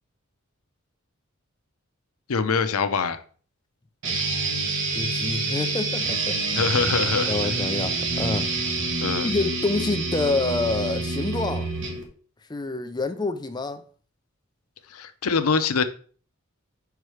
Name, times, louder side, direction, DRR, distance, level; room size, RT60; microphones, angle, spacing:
voice 1, 2.3-3.2 6.6-7.3 9.0-9.3 14.9-15.8, left 5 dB, 85° left, 0.7 m, -24 dB
sound 1, 4.0-12.0, right 3 dB, 60° right, 1.4 m, -27 dB
voice 2, 4.9-6.6 7.2-8.5 9.2-11.7 12.5-13.8, left 3 dB, 20° left, 0.5 m, -27 dB
5.5 x 4.7 x 4.9 m
head